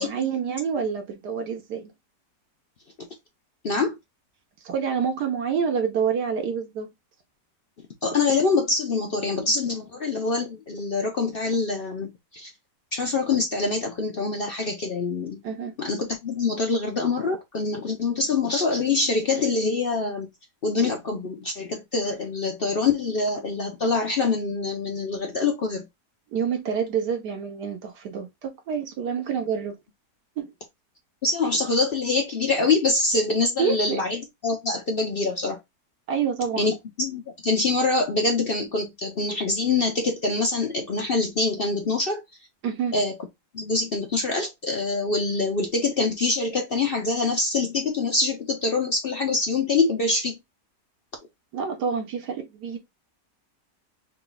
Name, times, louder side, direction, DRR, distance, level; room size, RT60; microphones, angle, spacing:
voice 1, 0.0-1.9 4.6-6.9 15.4-15.7 26.3-29.8 30.4-30.5 33.6-34.0 36.1-36.7 42.6-42.9 51.5-52.8, right 6 dB, 70° right, 1.3 m, -27 dB
voice 2, 3.6-4.0 8.0-12.5 12.9-15.4 15.8-20.3 20.6-25.9 31.2-35.6 36.6-42.2 42.9-43.2 43.5-50.4, left 3 dB, 60° left, 0.5 m, -25 dB
3.7 x 2.3 x 3.9 m
omnidirectional pair, 1.9 m